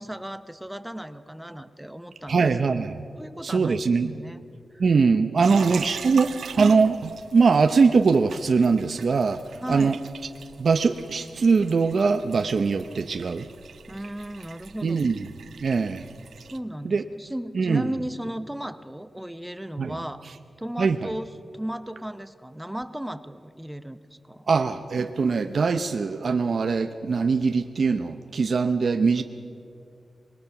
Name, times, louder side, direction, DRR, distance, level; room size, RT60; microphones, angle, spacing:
voice 1, 0.0-2.6 3.2-4.4 4.7-4.8 5.5-5.7 9.6-10.0 13.9-15.1 16.5-20.2 20.6-24.0 24.3-24.5, right 1 dB, 5° right, 11 dB, 0.8 m, -35 dB
voice 2, 2.3-3.0 3.4-4.1 4.8-7.0 7.3-10.0 10.6-13.5 14.8-15.3 15.6-16.1 16.8-17.0 17.5-17.9 19.8-20.0 20.8-21.1 24.5-29.2, right 4 dB, 60° right, 7 dB, 0.7 m, -22 dB
sound 1, 5.4-16.6, right 6 dB, 90° right, 0.7 m, -41 dB
26.0 x 21.5 x 5.9 m, 2.6 s
wide cardioid pair, 115°, 0 cm